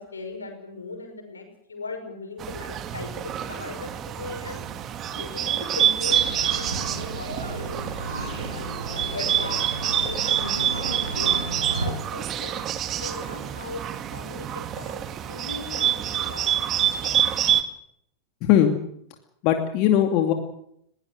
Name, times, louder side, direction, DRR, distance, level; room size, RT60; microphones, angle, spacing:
voice 1, 0.0-4.6 5.1-9.6 9.9-12.6 13.0-13.8 14.1-16.7 17.0-17.1, left 3 dB, 85° left, 5 dB, 5.9 m, -39 dB
Bird, 2.4-17.6, right 10 dB, 35° right, 2.0 m, -27 dB
sound 1, 6.0-11.9, right 2 dB, 85° right, 6.9 m, -33 dB
voice 2, 18.4-18.7 19.4-20.3, left 10 dB, 45° left, 5 dB, 2.6 m, -19 dB
21.0 x 18.0 x 7.9 m, 0.72 s
figure-of-eight pair, 95°, 0 cm